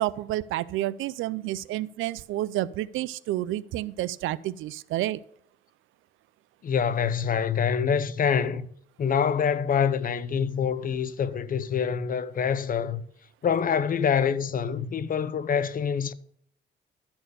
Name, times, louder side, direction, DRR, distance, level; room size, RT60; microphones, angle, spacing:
voice 1, 0.0-5.2, right 15 dB, 85° right, 0.5 m, -30 dB
voice 2, 6.6-8.7 9.0-13.0 13.4-16.1, left 7 dB, 45° left, 0.7 m, -25 dB
12.5 x 4.4 x 6.8 m
cardioid pair, 90°, 20 cm